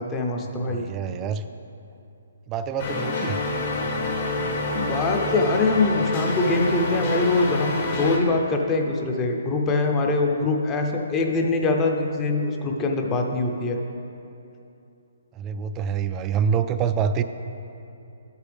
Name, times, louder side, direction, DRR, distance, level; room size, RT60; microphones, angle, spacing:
voice 1, 0.0-0.8 4.7-13.8, left 3 dB, 20° left, 2 dB, 0.7 m, -23 dB
voice 2, 0.6-1.4 2.5-3.4 15.3-17.2, right 7 dB, 20° right, 9 dB, 0.3 m, -26 dB
sound 1, 2.8-8.2, left 2 dB, 45° left, 1.2 m, -27 dB
11.5 x 8.2 x 3.4 m, 2.8 s
hypercardioid pair, 155°, 0 cm